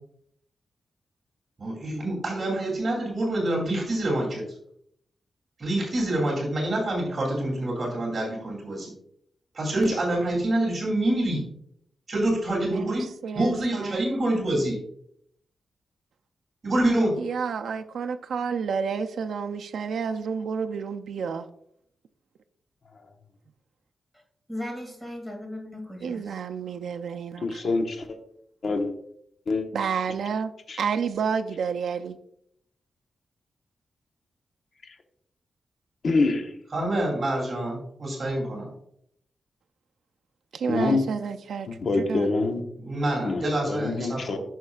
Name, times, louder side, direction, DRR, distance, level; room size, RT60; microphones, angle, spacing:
voice 1, 1.6-4.4 5.6-8.9 9.5-11.4 12.1-13.0 13.3-14.8 16.6-17.1 36.7-38.7 42.8-44.4, right 1 dB, 40° right, 2.9 m, -26 dB
voice 2, 12.7-13.0 13.2-14.0 17.2-21.4 26.0-27.7 29.7-30.5 30.8-32.2 40.5-41.7 42.0-42.3, right 6 dB, 90° right, 0.4 m, -30 dB
voice 3, 24.5-26.4, left 1 dB, 5° left, 2.3 m, -37 dB
voice 4, 27.4-28.2 28.6-28.9 29.5-29.7 30.7-30.8 36.0-36.5 40.7-41.0 41.7-42.6 43.2-44.4, left 3 dB, 55° left, 1.0 m, -25 dB
11.0 x 6.4 x 2.4 m
wide cardioid pair, 150°, 0 cm